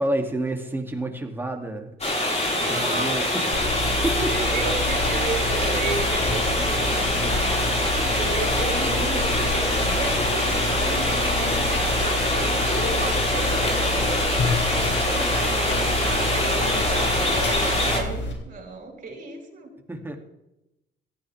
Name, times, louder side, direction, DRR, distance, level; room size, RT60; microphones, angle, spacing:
voice 1, 0.0-1.9 2.7-3.5 3.9-4.5 19.9-20.2, right 1 dB, 10° right, 2 dB, 2.7 m, -29 dB
sound 1, 2.0-18.0, left 1 dB, 35° left, 5.1 m, -24 dB
voice 2, 2.5-4.0 4.3-7.6 7.9-19.7, right 4 dB, 45° right, 0 dB, 5.6 m, -34 dB
sound 2, 3.5-18.3, left 2 dB, 70° left, 4.0 m, -29 dB
17.0 x 14.0 x 3.6 m, 0.90 s
cardioid pair, 90°, 20 cm